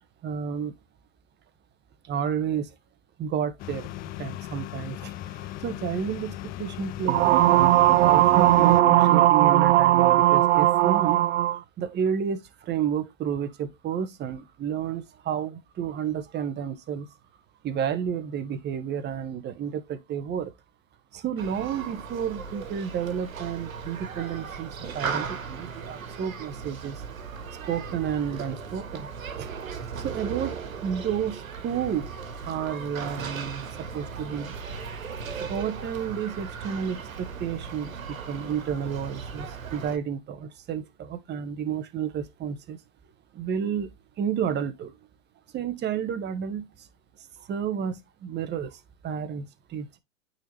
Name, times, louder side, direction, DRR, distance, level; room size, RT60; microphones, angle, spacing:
voice 1, 0.2-0.7 2.0-2.7 3.2-3.9 4.2-7.6 8.0-11.3 11.5-17.1 17.6-20.5 21.1-27.0 27.7-29.1 29.4-29.5 30.0-32.1 32.4-33.7 33.9-34.5 35.3-42.8 43.3-43.9 44.2-44.9 45.5-46.9 47.4-50.0, right 8 dB, 25° right, 1.4 m, -31 dB
sound 1, 3.6-8.8, left 13 dB, 25° left, 0.5 m, -37 dB
sound 2, 7.1-11.6, right 15 dB, 60° right, 0.5 m, -18 dB
Human group actions, 21.4-40.0, right 6 dB, 75° right, 1.7 m, -37 dB
9.0 x 4.3 x 3.3 m
hypercardioid pair, 105°, 41 cm